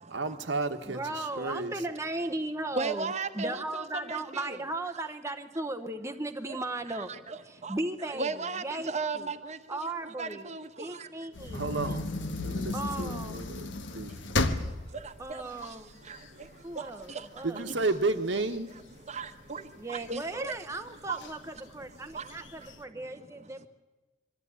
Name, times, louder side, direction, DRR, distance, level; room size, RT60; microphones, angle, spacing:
voice 1, 0.1-1.8 11.5-12.1 12.4-14.1 16.3-16.4 17.4-18.7, right 3 dB, 75° right, 7 dB, 1.5 m, -32 dB
voice 2, 0.9-7.1 7.4-9.3 9.7-10.5 10.8-11.6 12.7-13.4 15.2-15.9 16.6-17.7 19.8-23.7, right 2 dB, 15° right, 6 dB, 0.9 m, -36 dB
voice 3, 2.7-4.6 6.5-6.6 6.9-7.7 8.0-11.1 15.0-15.4 16.1-16.2 16.8-16.9 19.1-19.6 19.9-20.5 21.1-21.2 22.1-22.2, right 4 dB, 40° right, 9 dB, 1.2 m, -36 dB
sound 1, 11.4-16.5 17.0-17.1 17.4-19.5 20.1-20.6 21.2-21.3 21.6-21.7 22.1-22.8, left 2 dB, 80° left, 1.4 m, -34 dB
23.0 x 14.0 x 9.7 m, 1.2 s
head